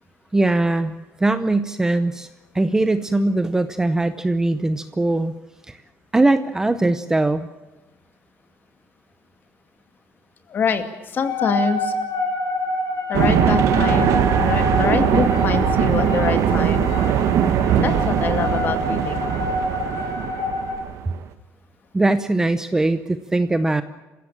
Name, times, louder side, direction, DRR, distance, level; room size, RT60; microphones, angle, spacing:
voice 1, 0.3-2.3 2.5-5.4 5.7-5.8 6.1-7.5 21.9-23.8, right 2 dB, 10° right, 11 dB, 0.8 m, -21 dB
voice 2, 10.5-12.0 13.1-16.9 17.8-19.4, left 6 dB, 35° left, 8 dB, 2.3 m, -25 dB
sound 1, 11.2-20.7, left 2 dB, 60° left, 6.9 m, -26 dB
sound 2, 13.1-21.2, right 10 dB, 60° right, 1.4 m, -20 dB
28.0 x 16.0 x 8.7 m, 1.1 s
cardioid pair, 170°, 6 cm